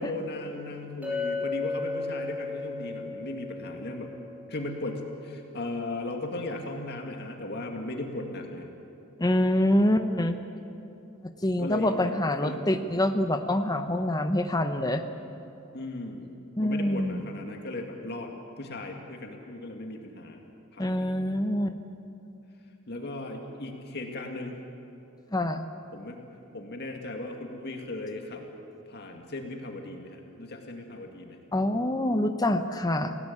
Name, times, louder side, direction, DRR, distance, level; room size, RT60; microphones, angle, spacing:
voice 1, 0.0-4.1 4.5-8.7 11.6-12.1 12.4-12.6 15.7-16.3 16.6-20.4 20.7-21.1 22.9-24.6 25.9-26.2 26.5-28.4 28.9-31.4, left 2 dB, 50° left, 2 dB, 2.1 m, -37 dB
Chink clink, 1.0-5.3, left 3 dB, 10° right, 5.3 m, -35 dB
voice 2, 9.2-10.4 11.2-15.0 16.6-17.2 20.8-21.8 25.3-25.7 31.5-33.2, left 1 dB, 20° left, 7 dB, 0.9 m, -26 dB
29.0 x 17.5 x 8.6 m, 2.8 s
head